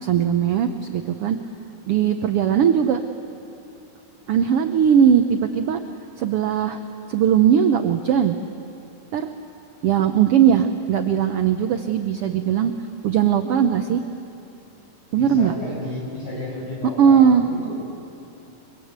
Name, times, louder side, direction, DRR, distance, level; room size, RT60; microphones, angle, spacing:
voice 1, 0.0-1.4 1.9-3.0 4.3-5.8 6.2-6.8 7.1-8.4 9.1-9.3 9.8-12.7 13.0-14.0 15.1-15.5 17.0-17.4, right 8 dB, 80° right, 7 dB, 1.3 m, -19 dB
voice 2, 15.1-17.7, left 1 dB, 65° left, -4 dB, 9.0 m, -32 dB
25.5 x 23.5 x 8.1 m, 2.8 s
omnidirectional pair, 3.7 m